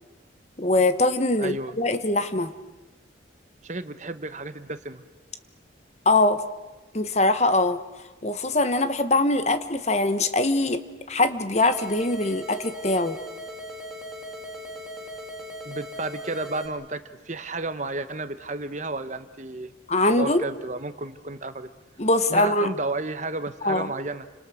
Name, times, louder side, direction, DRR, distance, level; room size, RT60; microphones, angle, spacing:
voice 1, 0.6-2.5 6.0-6.4 6.9-7.8 8.2-10.8 11.1-13.2 19.9-20.4 22.0-22.7 23.6-23.9, left 2 dB, 35° left, 11 dB, 1.2 m, -22 dB
voice 2, 1.4-1.7 3.6-5.0 15.6-19.7 20.1-21.7 22.3-24.3, right 2 dB, 40° right, 11 dB, 1.1 m, -32 dB
sound 1, 11.6-16.7, equal, ahead, 3.5 m, -39 dB
29.5 x 26.5 x 6.4 m, 1.1 s
head